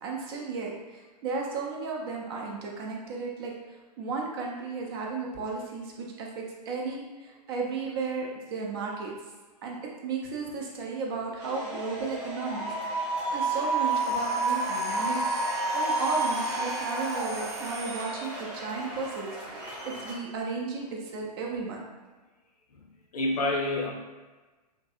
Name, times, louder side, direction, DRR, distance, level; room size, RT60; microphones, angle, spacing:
voice 1, 0.0-3.5 4.0-9.1 9.6-9.8 10.0-13.1 13.3-15.2 15.7-21.8, right 4 dB, 35° right, -1 dB, 0.4 m, -34 dB
sound 1, 11.4-20.1, right 2 dB, 5° right, 0.9 m, -31 dB
sound 2, 13.8-18.6, right 5 dB, 60° right, 0.8 m, -41 dB
voice 2, 22.7-23.9, left 2 dB, 65° left, 1 dB, 0.5 m, -29 dB
2.6 x 2.4 x 2.4 m, 1.3 s
figure-of-eight pair, 120°, 21 cm